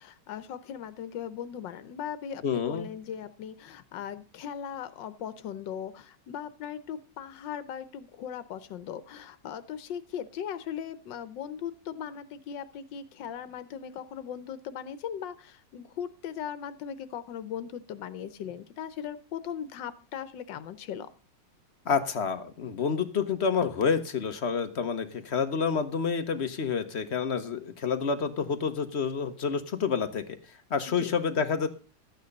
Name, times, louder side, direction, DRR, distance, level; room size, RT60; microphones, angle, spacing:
voice 1, 0.0-21.1 30.9-31.2, left 8 dB, 85° left, 13 dB, 1.6 m, -38 dB
voice 2, 2.4-2.9 21.9-30.2 30.7-31.7, left 6 dB, 45° left, 9 dB, 1.1 m, -28 dB
13.0 x 9.3 x 5.3 m, 0.37 s
omnidirectional pair, 1.9 m